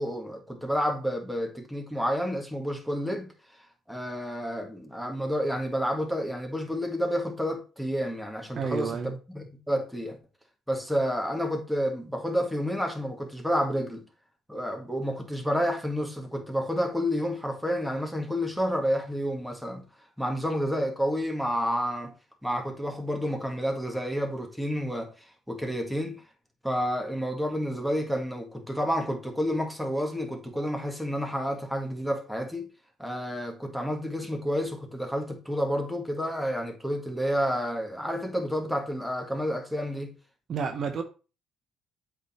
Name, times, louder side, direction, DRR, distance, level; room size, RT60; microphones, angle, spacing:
voice 1, 0.0-3.3 3.9-10.2 10.7-14.0 14.5-19.8 20.2-22.1 22.4-26.2 26.6-32.7 33.0-40.1, equal, ahead, 1.8 m, -30 dB
voice 2, 8.5-9.2 40.5-41.0, right 6 dB, 50° right, 1.0 m, -30 dB
8.2 x 3.8 x 4.3 m
cardioid pair, 100°, 0 cm